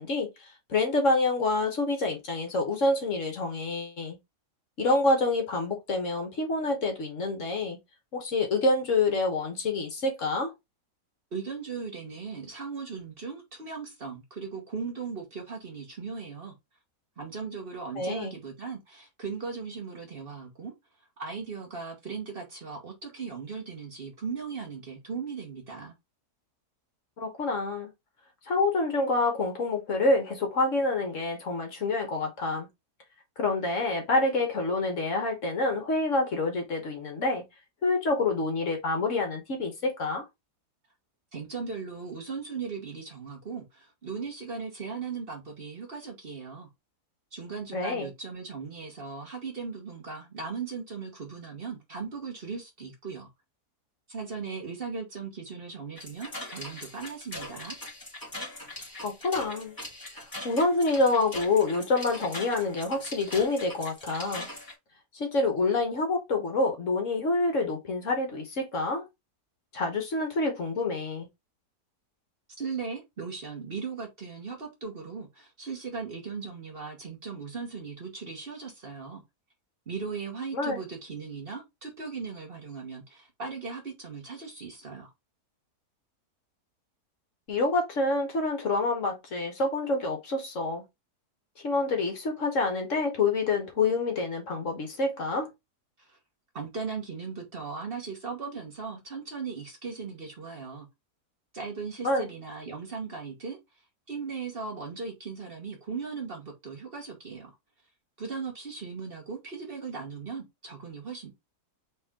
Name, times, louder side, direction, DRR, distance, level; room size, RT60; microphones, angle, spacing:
voice 1, 0.0-4.2 4.8-7.8 8.1-10.5 18.0-18.3 27.2-27.9 28.5-32.7 33.4-37.4 37.8-40.2 47.7-48.1 59.0-59.7 60.1-64.5 65.1-69.0 69.7-71.3 80.5-80.8 87.5-90.8 91.6-95.5 102.0-102.3, left 3 dB, 55° left, 1.4 m, -27 dB
voice 2, 11.3-16.5 17.2-20.7 21.2-25.9 41.3-46.7 47.3-53.3 54.1-57.8 72.6-79.2 79.9-85.1 96.0-96.2 96.5-100.9 101.5-103.6 104.1-107.5 108.2-111.3, right 5 dB, 40° right, 1.3 m, -38 dB
sound 1, 55.9-64.7, left 1 dB, 15° left, 1.9 m, -41 dB
4.2 x 3.1 x 3.6 m
omnidirectional pair, 1.7 m